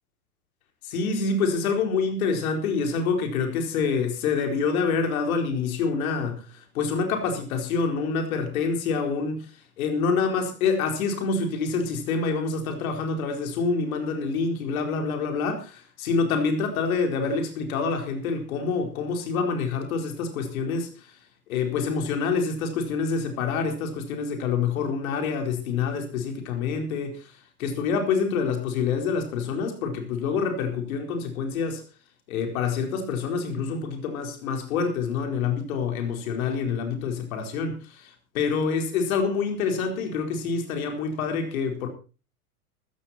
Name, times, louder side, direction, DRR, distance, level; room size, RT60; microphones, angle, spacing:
voice 1, 0.8-9.5 9.8-21.1 21.5-27.3 27.6-31.8 32.3-41.9, left 5 dB, 65° left, 4.4 m, -27 dB
14.5 x 14.5 x 4.3 m
hypercardioid pair, 100°, 44 cm